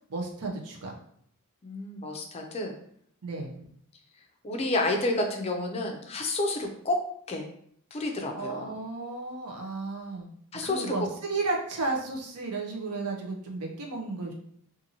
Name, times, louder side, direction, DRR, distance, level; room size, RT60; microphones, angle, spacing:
voice 1, 0.1-0.9 3.2-3.6 8.3-10.3 10.6-14.3, right 3 dB, 85° right, 0 dB, 0.7 m, -33 dB
voice 2, 1.6-2.8 3.4-3.7 4.4-7.0 7.3-7.5 7.9-8.7 10.5-11.1, left 2 dB, 30° left, 3 dB, 0.4 m, -30 dB
2.6 x 2.5 x 2.8 m, 0.66 s
head